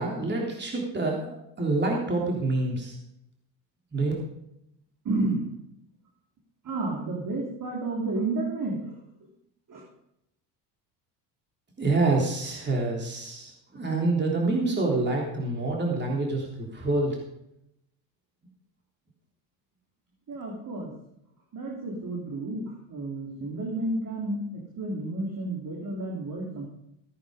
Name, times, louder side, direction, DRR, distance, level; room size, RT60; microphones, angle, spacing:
voice 1, 0.0-3.0 3.9-4.1 11.8-17.2, right 2 dB, 20° right, -1 dB, 3.4 m, -27 dB
voice 2, 5.0-5.5 6.6-9.3 9.7-9.8 20.3-20.9 21.5-26.6, right 2 dB, 40° right, -2 dB, 3.5 m, -31 dB
15.5 x 8.7 x 5.1 m, 0.79 s
supercardioid pair, 80°, 48 cm